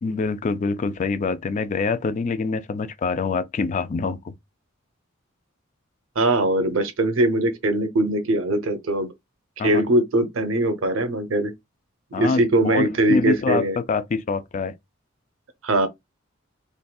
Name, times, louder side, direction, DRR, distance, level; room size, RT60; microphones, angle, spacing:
voice 1, 0.0-4.3 9.6-9.8 12.1-14.7, left 4 dB, 35° left, 0.3 m, -25 dB
voice 2, 6.2-9.1 9.6-11.5 12.2-13.8 15.6-15.9, right 1 dB, 80° right, 0.7 m, -21 dB
3.8 x 2.5 x 2.3 m
head